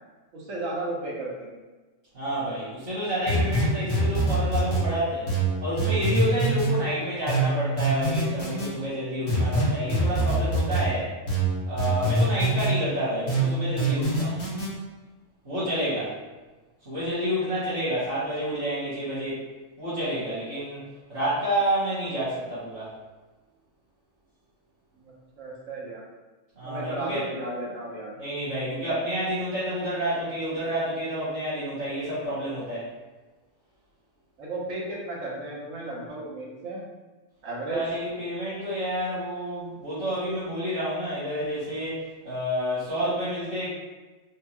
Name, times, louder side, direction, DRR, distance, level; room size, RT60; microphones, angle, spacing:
voice 1, 0.3-1.6 25.0-26.0 26.6-28.1 34.4-36.8 37.4-37.8, right 2 dB, 90° right, -4 dB, 1.4 m, -34 dB
voice 2, 2.1-5.3 5.6-11.1 11.7-14.4 15.4-16.1 16.8-19.4 19.8-20.8 21.1-22.9 26.5-27.2 28.2-32.9 37.7-43.7, equal, 65° right, -11 dB, 1.8 m, -29 dB
sound 1, 3.3-4.8 5.3-6.7 7.3-8.7 9.3-10.8 11.3-12.7 13.3-14.7, right 2 dB, 80° left, 1.7 m, -24 dB
4.7 x 2.3 x 2.9 m, 1.2 s
omnidirectional pair, 1.3 m